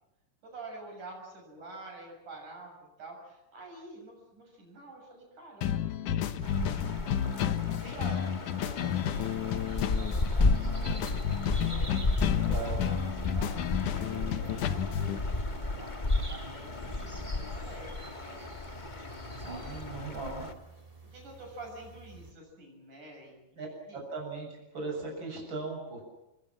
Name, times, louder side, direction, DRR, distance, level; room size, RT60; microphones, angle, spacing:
voice 1, 0.4-7.1 7.7-13.0 13.3-13.5 13.8-18.5 19.0-20.5 21.0-23.6 23.9-24.0, right 2 dB, 65° right, 1 dB, 8.4 m, -48 dB
sound 1, 5.6-15.2, left 9 dB, 70° left, 2.7 m, -31 dB
sound 2, 6.4-20.5, left 2 dB, 25° left, 1.0 m, -33 dB
sound 3, 9.2-22.3, right 1 dB, 10° right, 3.3 m, -50 dB
voice 2, 12.4-12.8 19.3-20.5 23.6-23.7 23.9-24.5 24.7-26.0, right 3 dB, 35° right, 0 dB, 8.0 m, -38 dB
30.0 x 21.5 x 7.5 m, 0.92 s
omnidirectional pair, 3.8 m